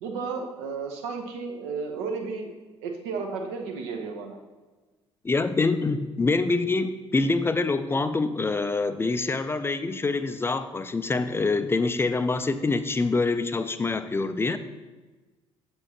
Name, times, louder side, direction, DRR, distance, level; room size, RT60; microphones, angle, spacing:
voice 1, 0.0-2.5 2.8-4.4, right 4 dB, 65° right, 2 dB, 0.9 m, -33 dB
voice 2, 5.2-14.6, left 3 dB, 15° left, 11 dB, 0.4 m, -25 dB
7.0 x 6.9 x 2.9 m, 1.2 s
figure-of-eight pair, 50°, 15 cm